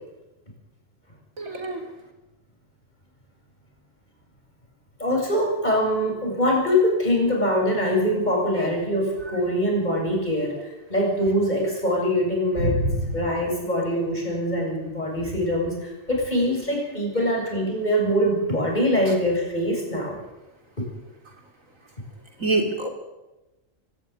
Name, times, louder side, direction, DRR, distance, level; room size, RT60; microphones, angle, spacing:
voice 1, 1.4-1.8 12.6-13.1 22.4-22.9, right 2 dB, 75° right, 3 dB, 4.1 m, -25 dB
voice 2, 5.0-12.8 13.1-20.2, equal, 35° left, -1 dB, 8.0 m, -23 dB
25.0 x 15.5 x 9.7 m, 1.0 s
omnidirectional pair, 1.4 m